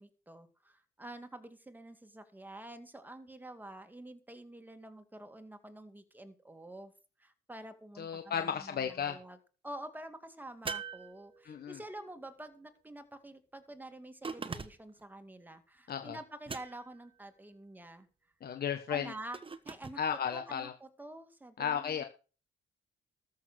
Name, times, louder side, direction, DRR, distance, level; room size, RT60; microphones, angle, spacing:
voice 1, 0.0-6.9 7.2-9.4 9.6-18.1 18.9-19.4 19.7-20.0 20.3-22.0, right 1 dB, 10° right, 8 dB, 2.2 m, -48 dB
voice 2, 8.0-9.2 11.4-11.8 15.9-16.2 18.4-19.1 20.0-20.7 21.6-22.0, left 8 dB, 50° left, 7 dB, 1.3 m, -34 dB
sound 1, 10.7-11.8 14.2-15.0 16.5-17.1 19.3-20.0, right 5 dB, 25° right, 1.2 m, -42 dB
13.5 x 6.7 x 6.3 m, 0.36 s
cardioid pair, 90°, 20 cm